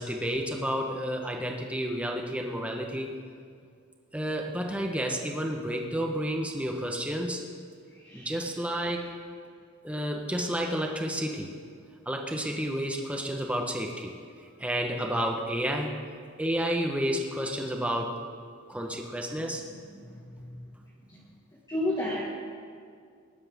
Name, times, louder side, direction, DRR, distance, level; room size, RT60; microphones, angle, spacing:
voice 1, 0.0-3.1 4.1-7.4 8.1-9.1 9.8-11.5 12.1-14.1 14.6-16.0 16.4-18.2 18.7-19.6, equal, 5° right, 1 dB, 1.2 m, -30 dB
voice 2, 7.9-8.4 8.9-9.1 19.7-20.6 21.1-21.2 21.7-22.2, left 1 dB, 20° left, -7 dB, 1.8 m, -34 dB
20.0 x 11.5 x 3.7 m, 2.2 s
head